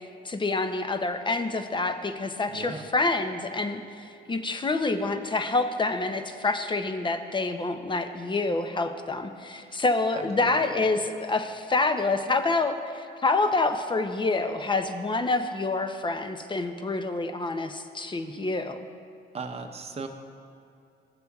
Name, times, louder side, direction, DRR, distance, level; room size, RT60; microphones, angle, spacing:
voice 1, 0.2-18.8, left 3 dB, 25° left, 8 dB, 0.6 m, -27 dB
voice 2, 2.5-2.8 9.6-9.8 10.1-10.6 19.3-20.1, right 4 dB, 30° right, 4 dB, 0.8 m, -38 dB
15.0 x 6.9 x 2.3 m, 2.6 s
cardioid pair, 90°, 20 cm